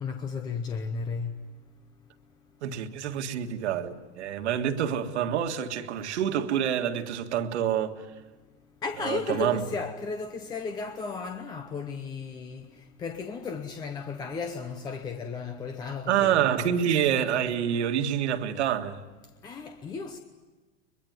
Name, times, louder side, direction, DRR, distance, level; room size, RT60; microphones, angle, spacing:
voice 1, 0.0-1.3 8.8-12.7 13.0-16.7 19.4-20.2, left 5 dB, 10° left, 0.7 m, -34 dB
voice 2, 2.6-8.1 9.0-9.6 16.1-19.0, right 9 dB, 70° right, 1.9 m, -27 dB
22.5 x 22.5 x 9.4 m
supercardioid pair, 160°, 35 cm